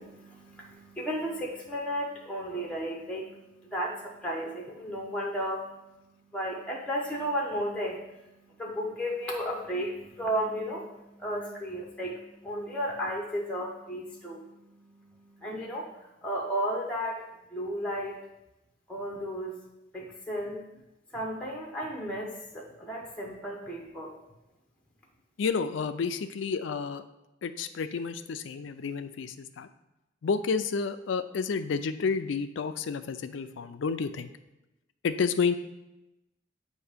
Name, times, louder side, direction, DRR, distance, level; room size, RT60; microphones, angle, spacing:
voice 1, 0.0-15.9 16.2-17.2 17.5-18.2 18.9-19.5 19.9-20.6 21.1-24.1, equal, 5° left, -2 dB, 0.7 m, -34 dB
voice 2, 25.4-27.0 27.4-29.7 30.2-34.3 35.0-35.6, left 5 dB, 85° left, 11 dB, 0.4 m, -30 dB
7.8 x 2.7 x 5.0 m, 0.95 s
head